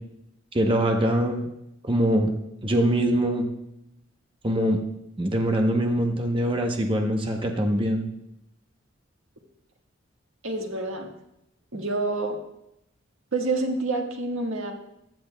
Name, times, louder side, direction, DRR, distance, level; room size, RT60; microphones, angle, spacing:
voice 1, 0.5-1.5 1.8-2.3 2.6-3.5 4.4-4.8 5.2-8.1, right 1 dB, 25° right, 3 dB, 0.8 m, -23 dB
voice 2, 10.4-11.1 11.7-12.4 13.3-14.7, right 2 dB, 85° right, 2 dB, 1.5 m, -27 dB
15.0 x 11.0 x 2.2 m, 0.82 s
head